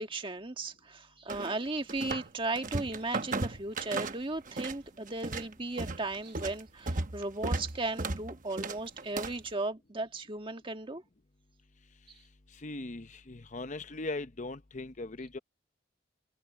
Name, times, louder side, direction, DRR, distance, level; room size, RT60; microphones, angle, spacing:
voice 1, 0.0-11.0, right 2 dB, 25° right, 1.6 m, -36 dB
sound 1, 1.3-2.3 2.6-4.8 5.1-9.5, right 3 dB, 40° right, 1.0 m, -35 dB
voice 2, 12.6-15.4, left 2 dB, 40° left, 0.8 m, -39 dB
head